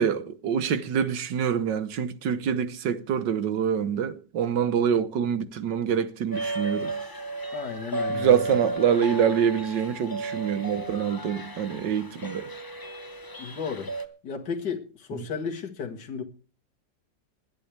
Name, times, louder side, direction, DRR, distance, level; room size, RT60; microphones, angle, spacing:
voice 1, 0.0-6.9 8.1-12.5, right 8 dB, 75° right, 1.7 m, -25 dB
sound 1, 6.3-14.1, right 2 dB, 25° left, 0.5 m, -34 dB
voice 2, 7.5-8.7 13.4-16.2, left 6 dB, 65° left, 2.1 m, -34 dB
20.5 x 11.5 x 3.4 m
omnidirectional pair, 1.9 m